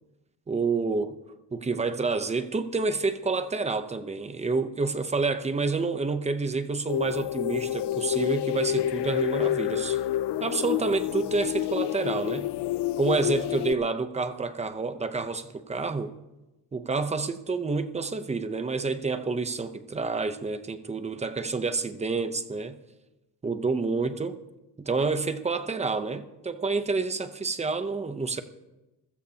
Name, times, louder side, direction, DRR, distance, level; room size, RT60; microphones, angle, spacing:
voice 1, 0.5-1.2 1.5-10.0 10.4-12.5 13.0-16.1 16.7-22.8 23.4-24.4 24.8-28.4, right 4 dB, 15° right, 0.7 m, -28 dB
sound 1, 6.9-13.7, left 13 dB, 80° left, 0.5 m, -28 dB
27.0 x 15.5 x 2.8 m
cardioid pair, 180°, 40 cm